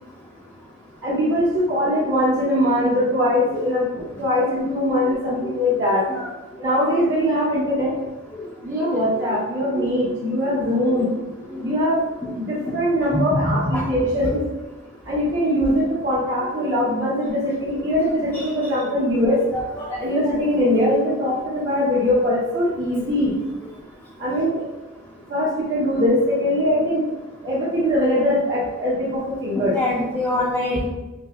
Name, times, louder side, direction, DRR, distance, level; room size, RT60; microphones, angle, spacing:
voice 1, 1.0-6.0 6.6-7.9 8.6-11.1 11.6-12.0 12.3-14.4 15.1-19.4 20.0-23.3 24.2-24.7 25.3-27.0 27.4-29.8, equal, 60° right, -11 dB, 1.0 m, -21 dB
voice 2, 9.7-10.1 11.5-11.6 12.2-12.3 12.7-12.8 13.1-13.8 18.3-18.5 19.8-20.0 29.6-30.9, left 1 dB, 10° left, -8 dB, 0.5 m, -25 dB
5.4 x 2.0 x 2.3 m, 1.1 s
head